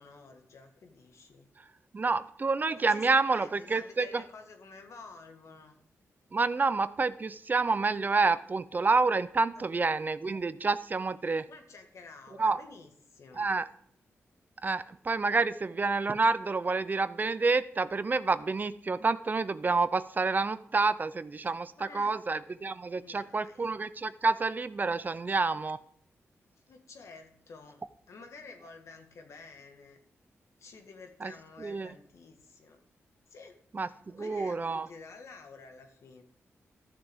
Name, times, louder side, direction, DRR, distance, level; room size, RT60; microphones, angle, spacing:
voice 1, 0.0-1.5 2.7-5.7 9.6-9.7 11.5-13.5 21.8-22.2 23.0-23.7 26.4-30.0 30.6-32.8 33.3-33.5 33.9-36.2, left 4 dB, 75° left, 4 dB, 1.7 m, -51 dB
voice 2, 1.9-4.2 6.3-11.5 12.4-12.6 13.3-13.7 14.6-25.8 31.2-31.3 31.6-31.9 33.7-34.9, right 4 dB, 35° right, 15 dB, 0.5 m, -28 dB
14.0 x 6.8 x 3.6 m, 0.64 s
cardioid pair, 80°, 5 cm